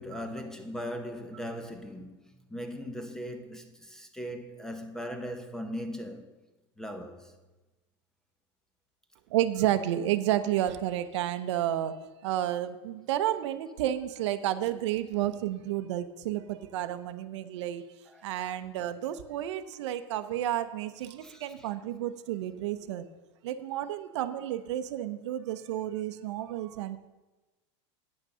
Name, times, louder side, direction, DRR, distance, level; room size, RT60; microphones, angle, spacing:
voice 1, 0.0-2.2 2.5-6.3 6.8-7.3 18.1-18.6 21.2-21.7, equal, 5° left, 0.7 m, -39 dB
voice 2, 9.3-17.8 18.2-23.0 23.4-27.0, right 12 dB, 85° right, 0.7 m, -31 dB
8.9 x 6.2 x 6.8 m
supercardioid pair, 160°, 15 cm